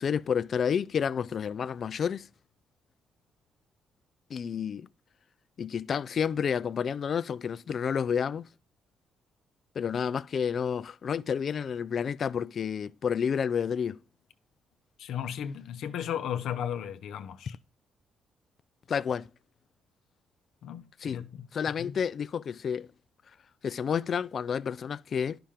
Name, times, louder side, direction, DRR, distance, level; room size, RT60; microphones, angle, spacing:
voice 1, 0.0-2.3 4.3-4.9 5.6-8.5 9.8-14.0 18.9-19.3 21.0-21.2 21.5-22.9 23.6-25.4, left 7 dB, 50° left, 0.4 m, -30 dB
voice 2, 15.0-17.6 20.6-22.0, left 9 dB, 75° left, 0.7 m, -35 dB
10.0 x 5.7 x 3.7 m
cardioid pair, 90°, 0 cm